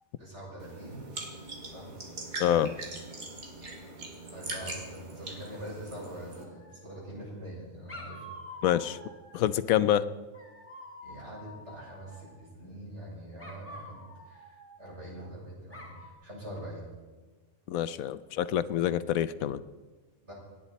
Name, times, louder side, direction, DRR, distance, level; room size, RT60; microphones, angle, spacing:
voice 1, 0.2-1.0 1.6-2.0 4.3-8.4 11.0-16.9 20.2-20.3, right 1 dB, 55° right, -4 dB, 6.2 m, -44 dB
sound 1, 0.6-6.4, right 2 dB, 85° right, 2.9 m, -41 dB
voice 2, 2.4-2.7 8.6-9.0 9.3-10.0 17.7-19.6, left 11 dB, 80° left, 15 dB, 1.1 m, -26 dB
Dog, 6.4-7.2 7.9-9.5 10.3-12.5 13.4-15.3 15.7-16.1, left 1 dB, 10° left, 2.3 m, -48 dB
27.5 x 10.0 x 4.1 m, 1.3 s
omnidirectional pair, 1.4 m